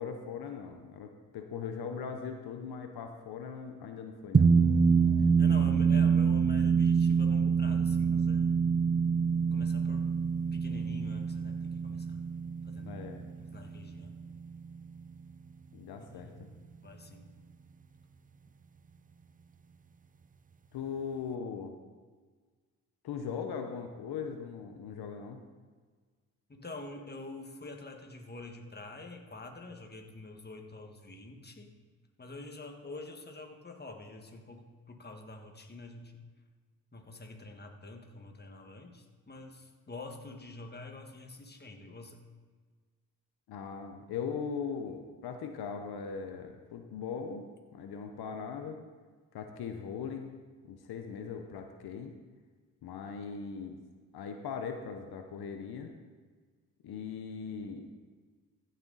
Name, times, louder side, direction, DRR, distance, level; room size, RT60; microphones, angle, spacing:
voice 1, 0.0-4.5 12.8-13.2 15.7-16.5 20.7-21.7 23.0-25.4 43.5-47.4 47.7-48.8 49.3-50.3 50.6-52.1 52.8-53.8 54.1-55.9 56.8-57.9, left 6 dB, 80° left, 5 dB, 0.8 m, -39 dB
sound 1, 4.3-15.0, right 5 dB, 25° right, 0.5 m, -26 dB
voice 2, 5.2-8.7 9.5-10.2 10.5-12.2 12.6-13.0 13.3-14.2 16.0-16.5 16.8-17.3 26.5-31.8 32.2-36.2 36.9-42.2, left 2 dB, 25° left, 3 dB, 1.6 m, -46 dB
15.0 x 6.7 x 4.0 m, 1.5 s
cardioid pair, 60°, 37 cm